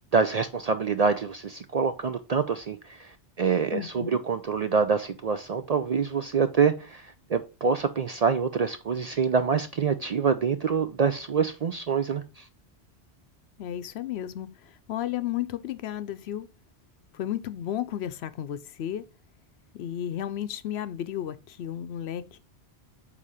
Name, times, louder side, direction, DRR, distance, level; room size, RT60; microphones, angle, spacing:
voice 1, 0.1-12.5, right 5 dB, 55° right, 0.4 m, -26 dB
voice 2, 3.7-4.2 13.6-16.5 17.1-19.0 19.8-22.4, left 11 dB, 75° left, 0.8 m, -33 dB
8.4 x 2.9 x 4.9 m
omnidirectional pair, 1.1 m